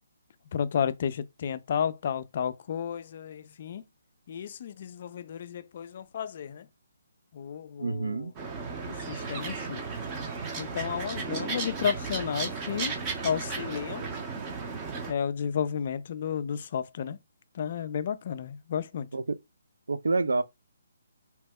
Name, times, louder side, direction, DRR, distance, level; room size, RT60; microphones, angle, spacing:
voice 1, 0.5-3.8 4.3-6.7 7.3-8.3 8.8-9.8 10.6-12.9 13.2-14.1 15.1-17.2 17.5-19.1, left 8 dB, 40° left, 0.3 m, -32 dB
voice 2, 7.8-8.3 19.1-19.4 19.9-20.4, right 3 dB, 85° right, 0.4 m, -27 dB
sound 1, 8.4-15.1, right 4 dB, 20° right, 0.6 m, -35 dB
2.9 x 2.1 x 3.4 m
hypercardioid pair, 165°, 0 cm